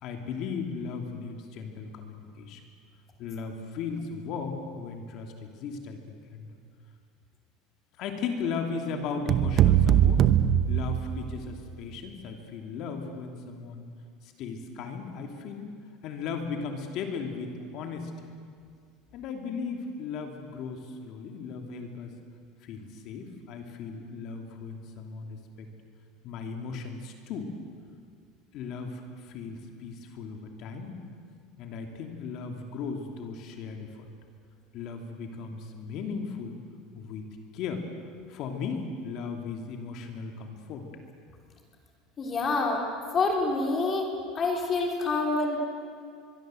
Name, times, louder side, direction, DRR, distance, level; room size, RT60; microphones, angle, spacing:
voice 1, 0.0-2.6 3.2-6.5 8.0-10.2 10.7-13.8 14.2-15.7 16.0-18.1 19.1-22.1 22.6-25.7 26.2-27.5 28.5-31.0 31.6-34.1 34.7-36.6 36.9-37.3 37.5-37.8 38.3-40.9, left 5 dB, 50° left, 4 dB, 2.8 m, -36 dB
sound 1, 9.3-11.6, right 10 dB, 40° right, 0.9 m, -22 dB
voice 2, 42.2-42.8 43.1-44.1 44.3-45.6, left 3 dB, 25° left, 1 dB, 3.4 m, -26 dB
23.5 x 23.0 x 7.8 m, 2.2 s
supercardioid pair, 145°, 0 cm